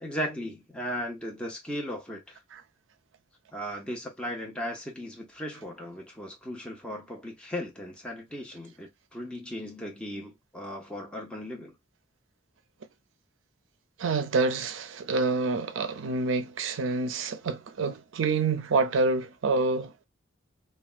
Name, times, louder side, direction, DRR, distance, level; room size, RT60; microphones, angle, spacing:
voice 1, 0.0-2.4 3.5-11.7, equal, 5° left, 0.7 m, -37 dB
voice 2, 14.0-19.9, right 3 dB, 70° right, 0.5 m, -27 dB
3.3 x 2.2 x 2.4 m
head